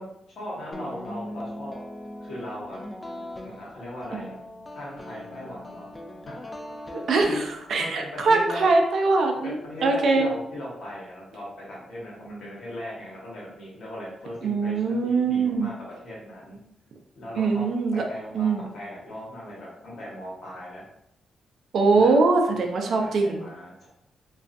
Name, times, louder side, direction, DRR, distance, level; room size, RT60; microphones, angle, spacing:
voice 1, 0.0-1.7 2.2-2.8 3.4-4.4 4.7-5.9 6.2-6.5 6.9-7.4 7.8-8.7 9.4-16.6 17.1-17.7 17.9-20.8 21.9-22.2 23.0-23.9, left 1 dB, 75° left, -5 dB, 1.1 m, -38 dB
sound 1, 0.7-7.8, left 1 dB, 25° left, 0.3 m, -40 dB
voice 2, 6.9-7.4 7.7-10.3 14.4-15.7 17.4-18.0 18.3-18.7 21.7-23.4, right 3 dB, 70° right, 3 dB, 0.5 m, -22 dB
2.3 x 2.3 x 2.5 m, 0.79 s
cardioid pair, 65°, 0 cm